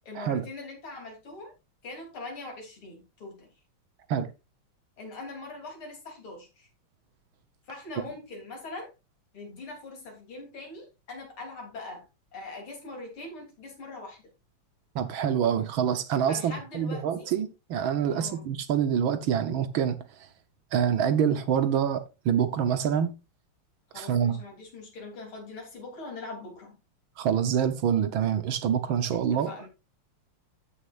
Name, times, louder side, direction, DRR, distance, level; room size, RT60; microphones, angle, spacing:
voice 1, 0.0-1.5 1.8-3.5 5.0-6.7 7.7-8.9 9.3-12.1 12.3-14.2 16.3-17.3 18.1-18.5 23.9-26.8 29.1-29.7, left 2 dB, 70° left, 4.1 m, -42 dB
voice 2, 14.9-20.0 20.7-23.1 23.9-24.4 27.2-29.7, right 8 dB, 70° right, 1.7 m, -26 dB
14.0 x 6.6 x 2.5 m
omnidirectional pair, 2.4 m